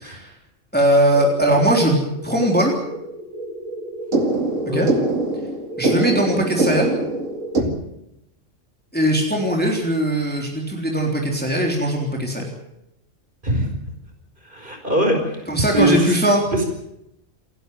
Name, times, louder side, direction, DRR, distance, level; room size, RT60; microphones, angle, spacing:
voice 1, 0.7-2.0 2.2-2.7 4.7-4.9 5.8-6.9 8.9-12.4 15.5-16.4, right 1 dB, 5° left, -1 dB, 3.5 m, -19 dB
sound 1, 1.1-7.6, right 2 dB, 80° right, 2.6 m, -25 dB
voice 2, 14.4-15.4 15.7-16.2 16.5-16.7, right 1 dB, 40° right, 3 dB, 5.4 m, -21 dB
28.0 x 11.5 x 9.3 m, 0.85 s
omnidirectional pair, 1.3 m